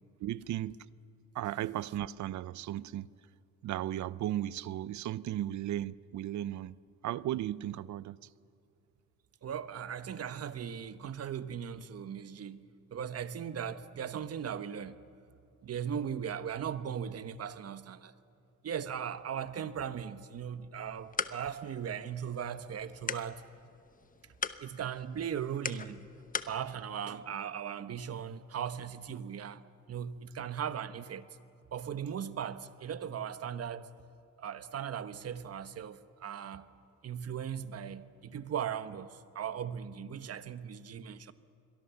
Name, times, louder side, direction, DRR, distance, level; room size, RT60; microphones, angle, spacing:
voice 1, 0.2-0.8 1.3-3.1 3.6-6.8 7.0-8.2, right 13 dB, 70° right, 0.7 m, -35 dB
voice 2, 9.4-15.0 15.6-18.1 18.6-23.4 24.6-26.1 26.5-29.6 29.9-31.3 31.7-33.9 34.4-36.7 37.0-41.3, right 8 dB, 55° right, 1.2 m, -38 dB
sound 1, 20.7-26.6, left 5 dB, 25° left, 1.0 m, -41 dB
29.0 x 23.0 x 7.1 m
cardioid pair, 90°, 30 cm